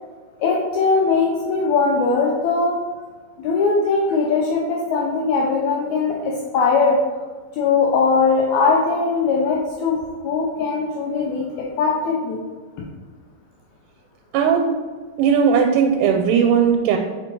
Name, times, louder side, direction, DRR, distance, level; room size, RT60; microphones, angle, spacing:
voice 1, 0.4-2.8 3.4-7.0 7.5-10.0 10.2-11.4 11.8-12.4, left 4 dB, 80° left, -2 dB, 1.7 m, -20 dB
voice 2, 14.3-14.7 15.2-17.0, right 7 dB, 90° right, 3 dB, 2.4 m, -17 dB
4.8 x 4.5 x 4.5 m, 1.4 s
omnidirectional pair, 4.1 m